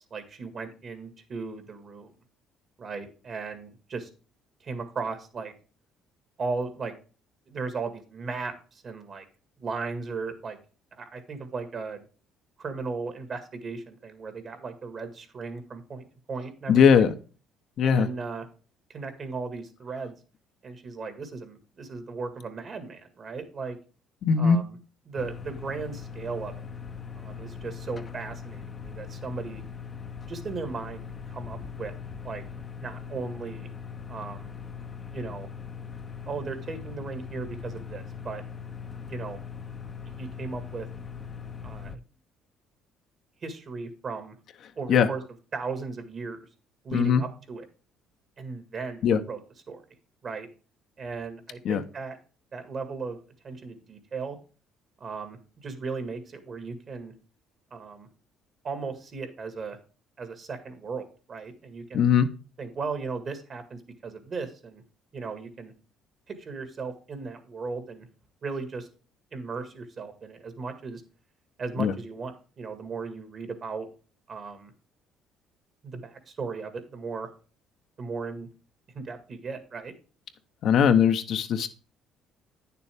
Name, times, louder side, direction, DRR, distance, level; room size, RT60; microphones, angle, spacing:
voice 1, 0.1-2.1 2.8-4.1 4.6-5.5 6.4-6.9 7.5-9.3 9.6-10.6 11.0-12.0 12.6-17.1 17.8-18.5 18.9-20.2 20.6-23.8 24.4-24.8 25.1-26.7 27.2-29.6 30.3-31.9 32.2-32.4 32.8-33.7 34.1-34.5 35.1-35.5 36.2-38.4 39.0-39.4 40.2-40.9 41.6-41.9 43.4-44.3 44.8-45.2 45.5-46.4 46.8-47.7 48.4-49.4 49.7-49.8 50.2-50.5 51.0-52.2 52.5-53.2 53.4-54.4 55.0-57.1 57.7-58.1 58.6-59.8 60.2-62.0 62.6-64.8 65.1-65.7 66.3-68.1 68.4-68.9 69.3-71.0 71.6-73.9 74.3-74.7 75.8-77.3 78.0-78.5 78.9-79.9, right 4 dB, 45° right, 8 dB, 1.8 m, -36 dB
voice 2, 16.7-17.1 17.8-18.1 24.2-24.6 44.9-45.1 46.9-47.2 49.0-49.2 51.6-51.8 61.9-62.3 71.8-71.9 80.6-81.7, left 7 dB, 60° left, 8 dB, 0.8 m, -20 dB
sound 1, 25.2-42.0, left 6 dB, 30° left, 0.7 m, -40 dB
9.4 x 6.8 x 3.5 m, 0.36 s
cardioid pair, 100°, 0 cm